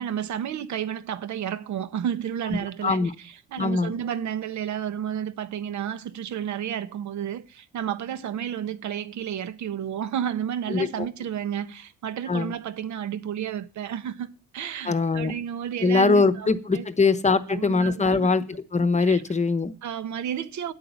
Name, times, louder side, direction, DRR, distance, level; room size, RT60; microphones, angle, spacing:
voice 1, 0.0-14.3 14.5-16.9 17.5-18.3 19.0-19.2 19.8-20.7, right 9 dB, 70° right, 1.1 m, -31 dB
voice 2, 2.8-3.1 3.6-3.9 10.7-10.9 12.3-12.5 14.9-15.4 15.8-19.7, left 4 dB, 25° left, 0.9 m, -22 dB
9.9 x 8.5 x 7.0 m
cardioid pair, 90°, 30 cm